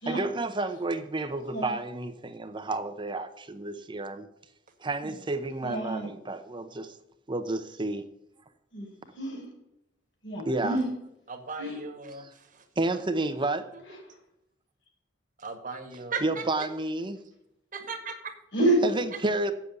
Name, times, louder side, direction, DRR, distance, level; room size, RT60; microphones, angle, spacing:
voice 1, 0.1-4.3 4.8-6.9 7.3-8.0 10.5-10.8 12.2-12.3 12.8-13.7 16.2-17.2 18.8-19.5, right 2 dB, 25° right, 9 dB, 0.7 m, -30 dB
voice 2, 5.6-6.1 8.7-9.5 10.2-10.8 11.6-11.8 18.5-18.8, right 1 dB, 75° left, -1 dB, 4.4 m, -28 dB
voice 3, 11.3-12.2 15.4-16.4 17.7-18.3, right 5 dB, 45° right, 7 dB, 1.6 m, -36 dB
8.3 x 7.4 x 8.0 m, 0.82 s
head